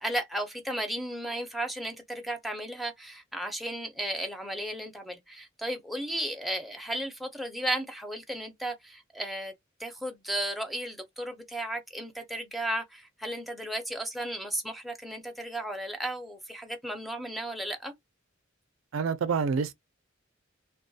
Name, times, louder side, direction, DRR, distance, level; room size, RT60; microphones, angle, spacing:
voice 1, 0.0-9.5 9.8-17.9, right 1 dB, ahead, 0.5 m, -34 dB
voice 2, 18.9-19.7, right 5 dB, 80° right, 0.4 m, -27 dB
2.3 x 2.2 x 2.6 m
head